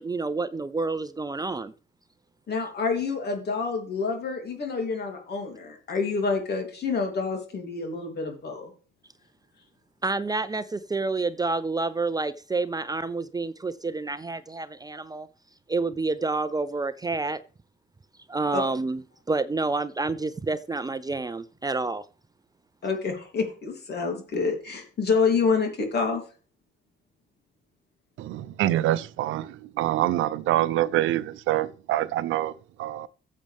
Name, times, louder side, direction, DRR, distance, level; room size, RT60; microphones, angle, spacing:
voice 1, 0.0-1.7 10.0-15.3 15.7-17.4 18.3-19.0 19.3-22.0, right 3 dB, 20° right, 0.5 m, -28 dB
voice 2, 2.5-8.7 18.5-18.7 22.8-26.2, left 4 dB, 55° left, 3.2 m, -27 dB
voice 3, 28.2-32.5 32.8-33.1, right 14 dB, 85° right, 0.6 m, -25 dB
14.0 x 7.6 x 3.5 m
cardioid pair, 90°, 20 cm